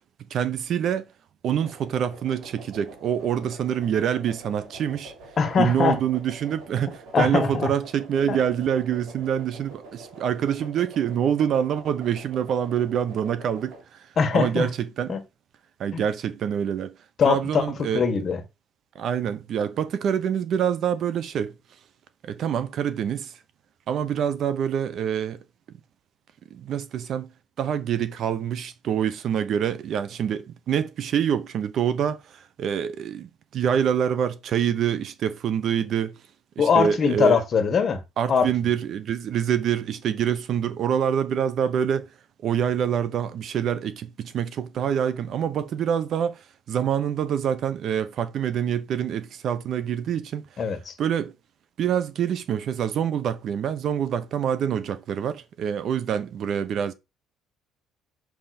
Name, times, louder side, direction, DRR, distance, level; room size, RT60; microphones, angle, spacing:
voice 1, 0.3-1.1 1.4-5.1 5.6-14.1 14.3-15.2 15.8-16.9 17.3-18.1 18.9-21.5 22.2-23.3 23.9-25.4 26.5-27.3 27.6-36.1 36.6-37.4 38.2-42.1 42.4-46.4 46.7-50.4 51.0-51.3 51.8-56.9, right 8 dB, 50° right, 0.8 m, -26 dB
sound 1, 1.6-13.8, right 2 dB, 85° right, 3.9 m, -46 dB
voice 2, 5.4-5.9 7.1-7.7 8.3-8.4 14.2-14.7 15.1-15.2 15.9-16.0 17.2-17.6 17.9-18.4 36.6-38.0 38.3-38.5 50.6-50.9, left 6 dB, 35° left, 1.8 m, -21 dB
6.3 x 5.7 x 4.3 m
cardioid pair, 135°, 0 cm